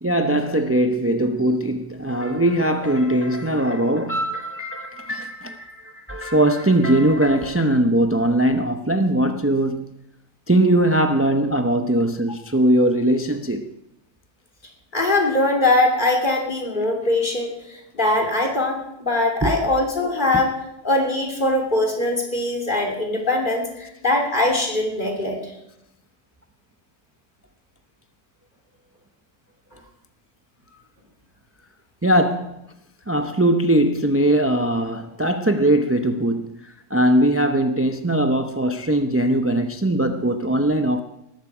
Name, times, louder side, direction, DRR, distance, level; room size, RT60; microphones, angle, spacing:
voice 1, 0.0-9.8 10.5-13.7 19.4-19.6 32.0-32.6 33.1-41.0, right 1 dB, 20° right, 0.3 m, -20 dB
voice 2, 14.9-20.6 20.8-25.5, left 2 dB, 30° left, 3.4 m, -22 dB
19.0 x 14.0 x 4.9 m
omnidirectional pair, 1.6 m